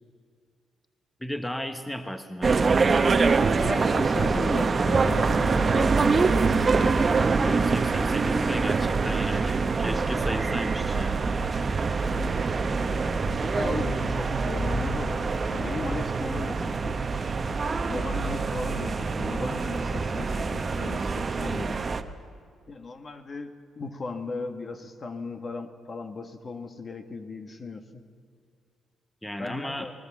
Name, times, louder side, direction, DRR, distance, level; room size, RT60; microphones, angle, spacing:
voice 1, 1.2-3.0 7.4-11.2 29.2-29.9, equal, 5° left, 8 dB, 1.0 m, -35 dB
sound 1, 2.4-22.0, right 4 dB, 35° right, 0.9 m, -25 dB
voice 2, 3.6-6.2 6.4-6.9 13.3-15.2 15.5-17.0 17.9-21.8 22.7-28.0 29.4-29.9, left 3 dB, 40° left, 8 dB, 1.4 m, -36 dB
20.0 x 19.5 x 7.2 m, 2.3 s
cardioid pair, 85°, 0 cm